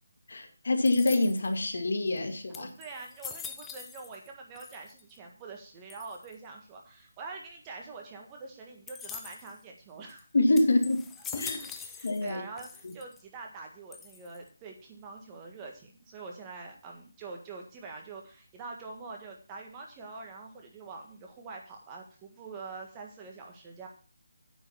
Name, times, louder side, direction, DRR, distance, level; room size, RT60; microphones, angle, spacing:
voice 1, 0.3-2.7 10.3-11.0 11.3-11.6 12.0-12.4, left 2 dB, 65° left, 6 dB, 2.0 m, -26 dB
sound 1, 0.9-1.6 2.2-2.3 2.5-4.3 4.6-5.2 5.9-6.3 8.9-9.6 10.1-10.2 10.6-12.3 12.6-13.2 13.9-14.5, left 6 dB, 5° left, 0.5 m, -43 dB
voice 2, 2.5-10.3 11.6-23.9, right 4 dB, 15° right, 1 dB, 1.6 m, -45 dB
9.0 x 5.6 x 7.0 m, 0.39 s
figure-of-eight pair, 165°, 0 cm